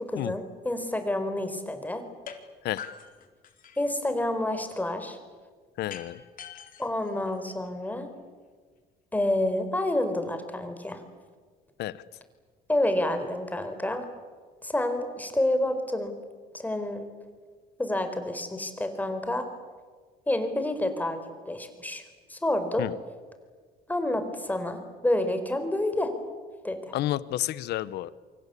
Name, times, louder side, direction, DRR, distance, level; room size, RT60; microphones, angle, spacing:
voice 1, 0.0-2.0 3.8-5.2 6.8-8.1 9.1-11.0 12.7-14.1 14.6-16.1 16.5-17.0 17.8-19.5 20.3-21.2 21.4-22.0 22.3-22.9 23.9-26.1 26.6-26.9, left 1 dB, 10° left, 7 dB, 4.6 m, -28 dB
sound 1, 2.3-2.4 2.8-4.0 5.9-7.9, left 8 dB, 55° left, 3.8 m, -44 dB
voice 2, 5.8-6.2 11.8-12.0 22.8-22.9 26.9-28.1, left 14 dB, 80° left, 17 dB, 1.1 m, -30 dB
28.5 x 24.5 x 8.5 m, 1.5 s
cardioid pair, 110°, 17 cm